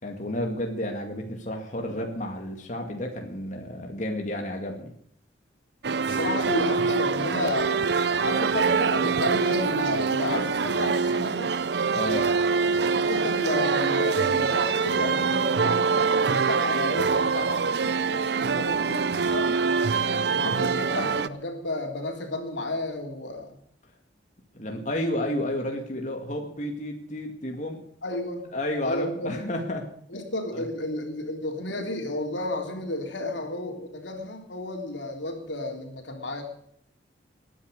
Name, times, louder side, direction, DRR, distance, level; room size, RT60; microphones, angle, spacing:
voice 1, 0.0-4.9 11.9-12.3 23.8-23.9 24.5-27.8 28.5-29.9 30.5-30.7, left 1 dB, 40° left, 2 dB, 2.2 m, -31 dB
sound 1, 5.8-21.3, right 5 dB, 65° right, 0.6 m, -24 dB
voice 2, 6.1-11.5 12.9-19.6 20.3-23.6 28.0-28.5 28.8-29.4 30.1-36.4, left 2 dB, 85° left, 3 dB, 3.6 m, -32 dB
20.5 x 10.0 x 6.6 m, 0.67 s
head